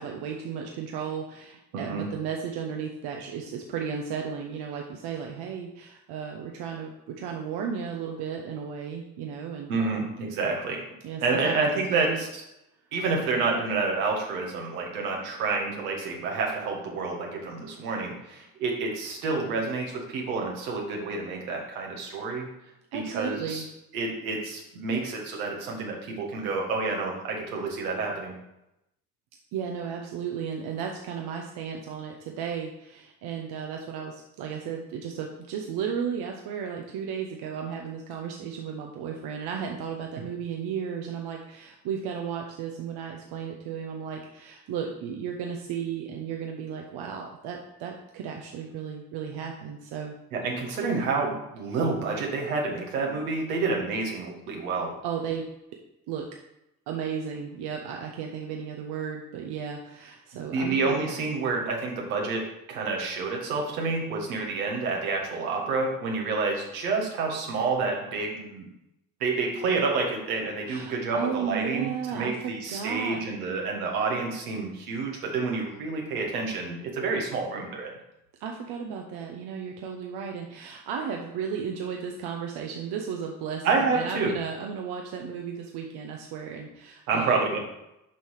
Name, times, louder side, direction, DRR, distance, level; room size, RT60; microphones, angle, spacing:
voice 1, 0.0-10.1 11.0-11.6 11.9-12.2 22.9-23.6 29.5-50.1 55.0-55.5 56.1-56.3 56.9-61.0 70.7-73.2 78.4-87.4, right 7 dB, 70° right, 2 dB, 1.0 m, -34 dB
voice 2, 1.7-2.1 9.7-10.8 11.2-12.3 12.9-22.5 22.9-23.6 23.9-28.3 50.3-54.9 60.5-68.7 69.2-77.9 83.6-84.4 87.1-87.6, right 4 dB, 85° right, 0 dB, 1.6 m, -29 dB
7.2 x 5.6 x 4.8 m, 0.87 s
hypercardioid pair, 50°, 42 cm